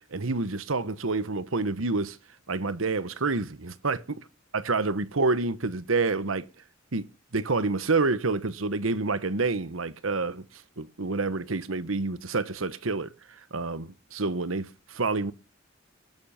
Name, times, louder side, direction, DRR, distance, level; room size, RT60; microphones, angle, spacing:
voice 1, 0.0-2.2 2.5-4.0 4.5-6.5 6.9-7.1 7.3-10.4 10.8-13.1 13.5-15.3, right 3 dB, 85° right, 1.1 m, -28 dB
18.0 x 9.6 x 5.8 m
head